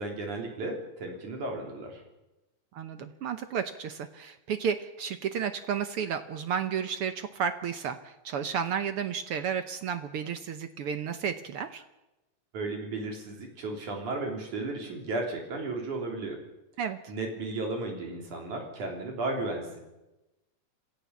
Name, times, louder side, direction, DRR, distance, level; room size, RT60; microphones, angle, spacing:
voice 1, 0.0-2.0 12.5-16.4 17.1-19.8, right 2 dB, 85° right, 2 dB, 5.0 m, -34 dB
voice 2, 2.7-11.8 16.8-17.0, right 7 dB, 65° right, 10 dB, 1.5 m, -32 dB
26.5 x 14.5 x 7.2 m, 0.99 s
omnidirectional pair, 3.4 m